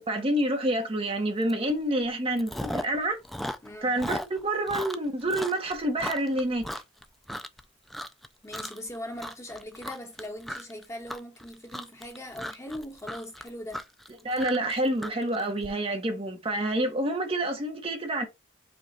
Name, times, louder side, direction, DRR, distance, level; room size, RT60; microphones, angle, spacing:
voice 1, 0.1-3.2 3.8-6.7 14.2-18.3, right 1 dB, 30° right, 0.9 m, -28 dB
Chewing mastication, 1.5-1.7 2.0-3.0 3.2-7.6 7.9-8.3 8.5-8.9 9.2-15.7, equal, ahead, 0.3 m, -36 dB
voice 2, 3.6-4.0 8.4-13.8, left 1 dB, 15° left, 1.1 m, -40 dB
5.2 x 2.3 x 4.1 m
head